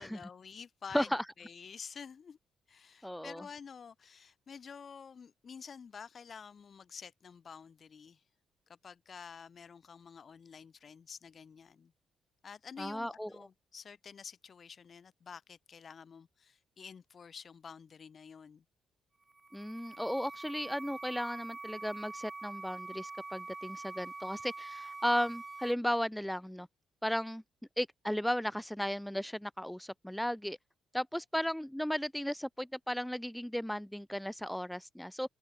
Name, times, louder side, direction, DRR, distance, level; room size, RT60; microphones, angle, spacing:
voice 1, 0.0-1.1 1.4-2.4 2.7-8.2 8.7-11.9 12.4-18.6, left 6 dB, 45° left, 3.1 m, -49 dB
voice 2, 0.9-1.2 3.0-3.4 12.8-13.5 19.5-26.7 27.0-27.4 27.8-30.6 30.9-35.3, equal, 5° left, 0.7 m, -35 dB
sound 1, 19.2-25.7, right 3 dB, 20° right, 1.1 m, -45 dB
cardioid pair, 90°, 0 cm